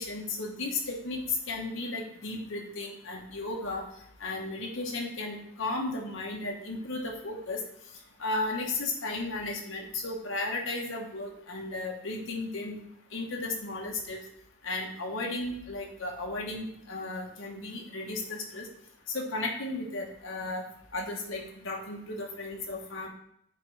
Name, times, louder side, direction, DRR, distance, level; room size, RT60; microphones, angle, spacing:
voice 1, 0.0-3.8 4.2-7.6 8.2-12.8 13.1-14.2 14.6-18.7 19.1-20.6 20.9-23.1, left 2 dB, 70° left, 0 dB, 1.1 m, -34 dB
8.0 x 3.5 x 3.3 m, 0.71 s
head